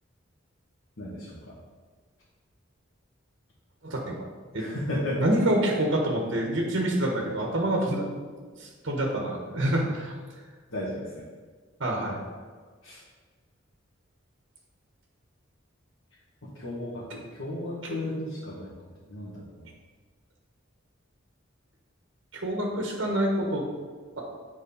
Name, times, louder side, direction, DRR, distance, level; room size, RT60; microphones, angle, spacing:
voice 1, 1.0-1.3 4.6-5.2 10.7-11.2 12.8-13.0 16.5-17.0 17.3-18.7 19.1-19.6, left 1 dB, 85° left, -9 dB, 2.0 m, -34 dB
voice 2, 3.8-4.2 4.5-4.6 5.2-8.1 8.4-10.1 11.8-12.2 17.8-18.0 22.3-23.6 24.2-24.3, right 1 dB, 60° right, -1 dB, 1.4 m, -27 dB
7.2 x 4.7 x 5.5 m, 1.5 s
head